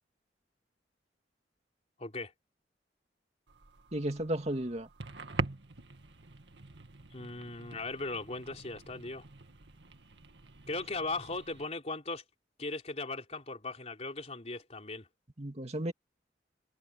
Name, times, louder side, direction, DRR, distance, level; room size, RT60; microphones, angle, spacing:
voice 1, 2.0-2.3 7.1-9.2 10.7-12.2 12.6-15.1, left 3 dB, 40° left, 3.6 m, -38 dB
sound 1, 3.5-11.7, right 3 dB, 75° right, 2.0 m, -44 dB
voice 2, 3.9-4.9 15.4-15.9, right 1 dB, 40° right, 2.4 m, -34 dB
head